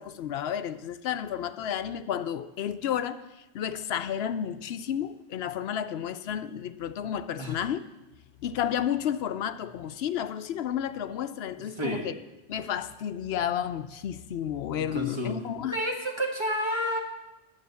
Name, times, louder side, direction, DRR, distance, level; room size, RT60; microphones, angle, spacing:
voice 1, 0.0-7.8 8.4-12.1 12.5-15.8, left 9 dB, 65° left, 0.8 m, -32 dB
voice 2, 11.8-12.1 14.8-15.3 15.7-17.0, equal, 25° right, 1.6 m, -30 dB
9.9 x 7.5 x 6.9 m
omnidirectional pair, 1.2 m